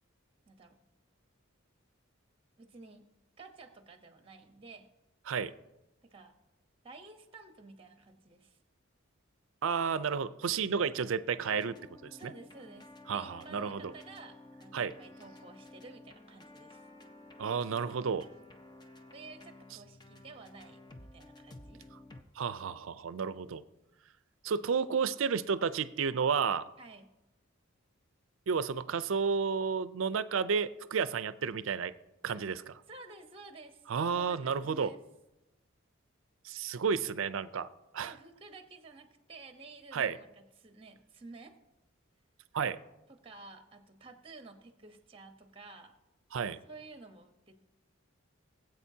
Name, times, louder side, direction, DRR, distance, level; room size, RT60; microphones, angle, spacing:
voice 1, 0.5-0.8 2.6-3.1 3.4-4.9 6.0-6.3 6.8-8.6 12.2-16.8 19.1-21.8 26.8-27.1 32.3-32.4 32.9-33.8 34.1-35.0 38.0-41.6 43.1-45.9 46.6-47.5, right 3 dB, 25° right, 6 dB, 0.9 m, -52 dB
voice 2, 9.6-11.7 12.0-12.3 13.1-13.9 14.7-14.9 17.4-18.3 22.4-23.6 24.4-26.7 28.5-31.9 32.2-32.6 33.9-34.9 36.4-37.7 37.9-38.1 39.9-40.2 42.5-42.8 46.3-46.6, right 6 dB, 75° right, 15 dB, 0.4 m, -31 dB
sound 1, 11.4-22.2, left 1 dB, 20° left, 0.6 m, -53 dB
20.5 x 7.9 x 2.8 m, 0.97 s
head